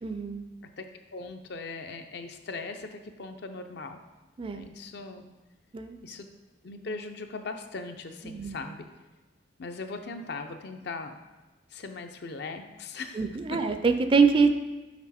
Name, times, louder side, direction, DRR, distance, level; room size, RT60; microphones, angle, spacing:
voice 1, 0.0-0.4 4.4-4.7 5.7-6.0 8.2-8.6 13.1-14.5, right 4 dB, 30° right, 7 dB, 0.4 m, -24 dB
voice 2, 1.1-4.0 4.5-5.2 6.0-6.3 6.6-8.9 9.6-11.1 11.7-13.2 13.5-13.6, left 3 dB, 65° left, 6 dB, 0.6 m, -39 dB
6.0 x 4.7 x 4.2 m, 1.1 s
head